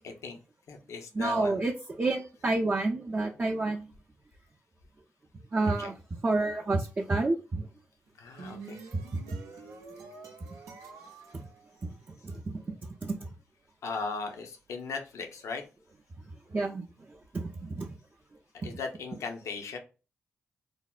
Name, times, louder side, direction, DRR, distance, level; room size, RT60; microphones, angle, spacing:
voice 1, 0.0-0.4 0.7-1.7 5.6-5.9 8.2-8.8 13.8-15.6 18.6-19.8, left 4 dB, 70° left, 5 dB, 0.6 m, -37 dB
voice 2, 1.1-1.7 2.0-3.8 5.5-5.9 6.2-7.6 9.1-9.2 12.2-12.3 13.0-13.1 16.5-16.8 17.3-17.9, right 2 dB, 35° right, 2 dB, 0.4 m, -28 dB
sound 1, 8.1-12.4, right 4 dB, 80° right, 0.5 m, -48 dB
3.3 x 2.1 x 2.3 m, 0.32 s
supercardioid pair, 45°, 5 cm